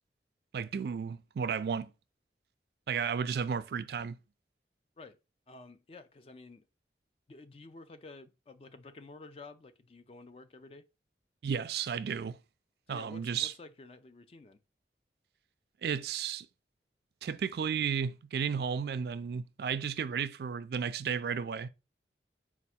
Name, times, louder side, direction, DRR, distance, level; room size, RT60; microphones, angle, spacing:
voice 1, 0.5-1.9 2.9-4.2 11.4-12.4 12.9-13.5 15.8-16.5 17.2-21.7, right 7 dB, 65° right, 0.3 m, -33 dB
voice 2, 5.5-6.7 7.3-10.8 12.9-14.6, left 3 dB, 35° left, 0.3 m, -51 dB
4.5 x 2.4 x 4.1 m
head